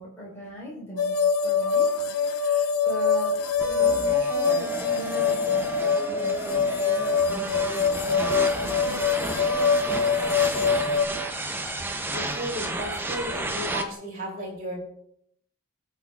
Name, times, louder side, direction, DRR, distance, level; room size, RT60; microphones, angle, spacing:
voice 1, 0.0-2.0 2.3-3.3 3.6-6.8 7.3-9.2, equal, 10° left, -6 dB, 3.6 m, -40 dB
sound 1, 1.0-11.1, left 5 dB, 85° left, 0.7 m, -24 dB
sound 2, 3.6-13.8, right 2 dB, 10° right, 0.6 m, -32 dB
voice 2, 12.1-14.7, equal, 40° right, -3 dB, 3.1 m, -34 dB
17.0 x 5.9 x 2.4 m, 0.73 s
head